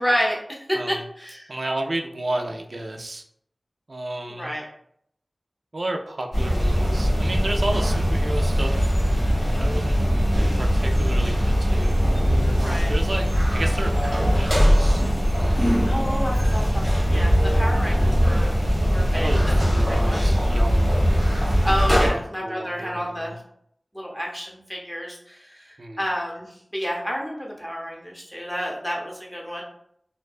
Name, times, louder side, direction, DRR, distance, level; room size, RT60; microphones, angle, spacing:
voice 1, 0.0-1.5 4.3-4.7 12.6-12.9 15.4-18.5 18.8-20.2 21.6-23.4 23.9-29.6, equal, 10° left, -2 dB, 0.7 m, -30 dB
voice 2, 1.5-3.2 3.9-4.5 5.7-8.9 9.5-10.0 10.3-12.0 12.6-15.1 15.4-15.8 19.1-21.0 22.0-23.4 25.8-26.0, right 1 dB, 70° right, 3 dB, 0.3 m, -32 dB
sound 1, 6.3-22.1, equal, 55° left, 1.3 m, -20 dB
2.5 x 2.2 x 2.3 m, 0.69 s
wide cardioid pair, 50°, 0 cm